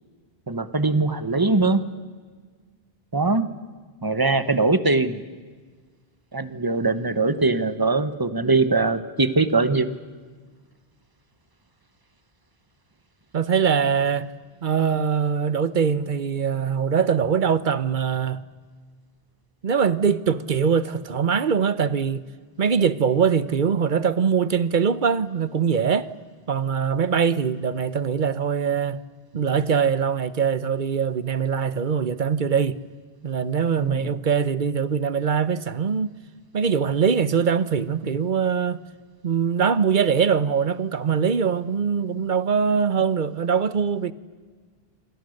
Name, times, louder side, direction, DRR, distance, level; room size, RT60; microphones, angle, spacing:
voice 1, 0.5-1.8 3.1-3.5 4.0-5.2 6.3-9.9 33.8-34.2, right 3 dB, 20° right, 1.2 m, -21 dB
voice 2, 13.3-14.3 14.6-18.4 19.6-22.2 22.6-26.1 26.5-29.0 29.3-32.8 33.2-36.1 36.5-38.8 39.2-44.1, right 6 dB, 55° right, 1.0 m, -22 dB
27.5 x 26.0 x 6.6 m
omnidirectional pair, 1.0 m